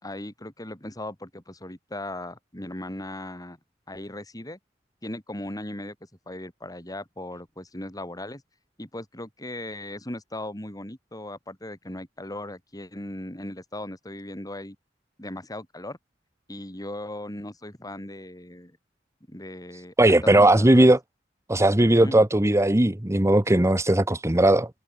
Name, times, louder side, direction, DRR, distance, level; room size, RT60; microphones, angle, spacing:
voice 1, 0.0-3.6 3.9-4.6 5.0-5.9 6.3-8.4 8.8-14.8 15.2-16.0 16.5-18.8 19.3-20.9 22.0-22.2, left 1 dB, 20° left, 4.7 m, -38 dB
voice 2, 20.0-21.0 21.5-24.7, right 1 dB, 15° right, 1.1 m, -18 dB
head